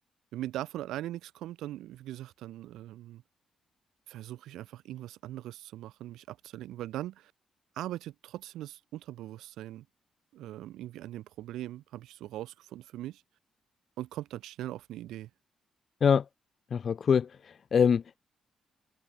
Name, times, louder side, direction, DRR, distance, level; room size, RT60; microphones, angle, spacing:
voice 1, 0.3-3.2 4.1-7.3 7.8-9.9 10.3-13.2 14.0-15.3, right 14 dB, 90° right, 3.7 m, -40 dB
voice 2, 16.7-17.3 17.7-18.2, left 7 dB, 55° left, 0.4 m, -23 dB
cardioid pair, 75°, 0 cm